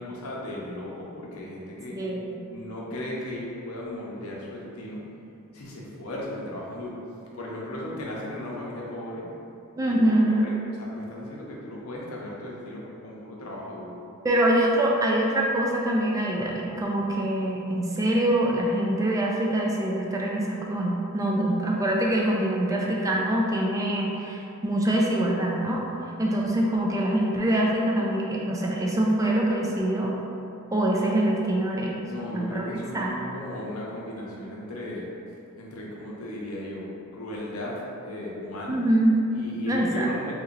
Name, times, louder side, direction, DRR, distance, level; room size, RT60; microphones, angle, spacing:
voice 1, 0.0-2.0 2.5-5.0 5.5-7.0 7.3-9.3 9.8-14.0 32.1-35.1 35.6-38.9 39.3-40.3, left 1 dB, 75° left, -4 dB, 0.7 m, -36 dB
voice 2, 1.9-2.4 9.8-10.5 14.2-25.8 26.2-30.1 30.7-32.0 32.3-32.6 32.9-33.1 38.7-39.2 39.7-40.1, right 1 dB, 15° right, -2 dB, 0.3 m, -24 dB
2.9 x 2.7 x 3.8 m, 2.7 s
head